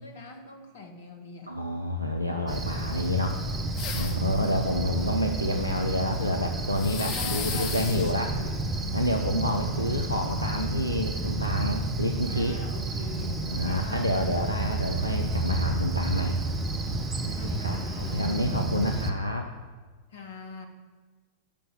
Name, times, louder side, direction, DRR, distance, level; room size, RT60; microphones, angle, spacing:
voice 1, 0.0-1.5 3.9-4.3 7.1-9.1 9.6-10.1 12.2-14.3 17.3-18.3 20.1-20.7, left 4 dB, 60° left, 4 dB, 1.5 m, -43 dB
voice 2, 1.5-3.4 3.9-8.4 8.9-12.6 13.5-16.4 17.2-19.5, left 1 dB, 85° left, 3 dB, 0.6 m, -28 dB
Cricket, 2.5-19.1, right 2 dB, 20° right, 1.1 m, -31 dB
sound 1, 3.8-4.3 6.7-8.1, left 6 dB, 40° left, 1.1 m, -34 dB
8.4 x 5.8 x 7.2 m, 1.4 s
figure-of-eight pair, 90°, 0 cm